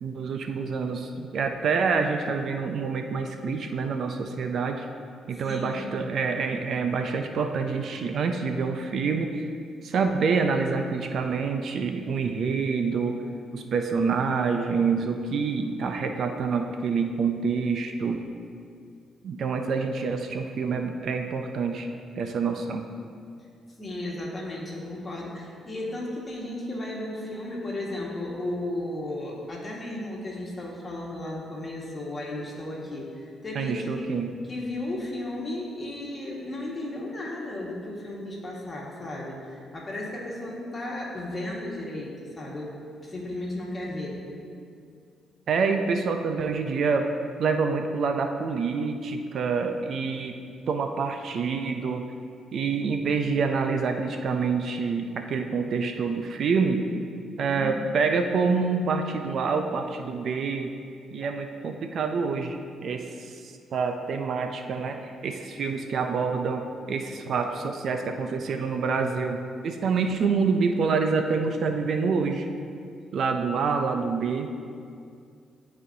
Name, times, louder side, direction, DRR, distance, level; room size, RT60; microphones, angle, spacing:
voice 1, 0.0-4.9 5.3-9.5 9.8-13.2 13.5-18.2 19.2-21.9 22.2-22.9 33.6-34.3 45.5-47.1 47.4-50.3 50.7-52.0 52.5-57.0 57.4-60.7 61.1-62.6 62.8-72.5 73.1-74.7, right 5 dB, 60° right, 5 dB, 0.4 m, -27 dB
voice 2, 5.3-5.8 23.8-34.1 34.5-42.7 43.0-44.2 57.5-57.7, left 1 dB, 30° left, -4 dB, 1.7 m, -34 dB
12.0 x 4.2 x 2.7 m, 2.4 s
cardioid pair, 90°, 0 cm